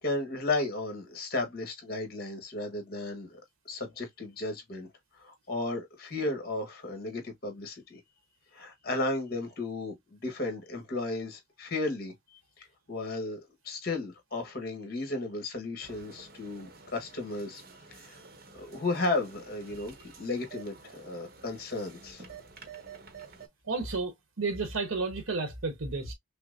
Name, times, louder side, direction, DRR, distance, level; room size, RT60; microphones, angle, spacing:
voice 1, 0.0-3.4 3.6-4.9 5.2-8.0 8.5-12.1 12.6-13.4 13.6-17.6 18.0-18.2 18.5-22.2, left 2 dB, 45° left, 1.3 m, -34 dB
sound 1, 15.8-23.5, right 4 dB, 45° right, 0.8 m, -50 dB
voice 2, 23.7-26.1, right 3 dB, 80° right, 1.0 m, -32 dB
5.7 x 2.0 x 2.6 m
head